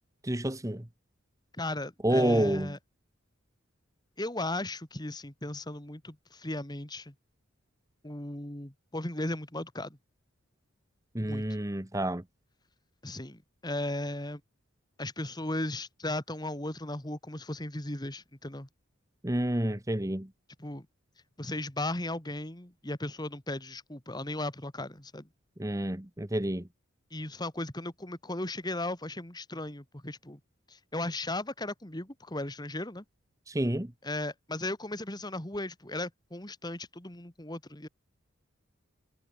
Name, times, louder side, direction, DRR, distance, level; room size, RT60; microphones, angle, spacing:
voice 1, 0.2-0.8 2.0-2.7 11.1-12.2 19.2-20.3 25.6-26.7 33.5-33.9, right 1 dB, 15° right, 1.2 m, -29 dB
voice 2, 1.6-2.8 4.2-7.1 8.0-10.0 11.2-11.6 13.0-14.4 15.0-18.7 20.6-20.9 21.4-25.3 27.1-30.4 30.7-33.0 34.0-37.9, left 1 dB, 20° left, 2.2 m, -36 dB
head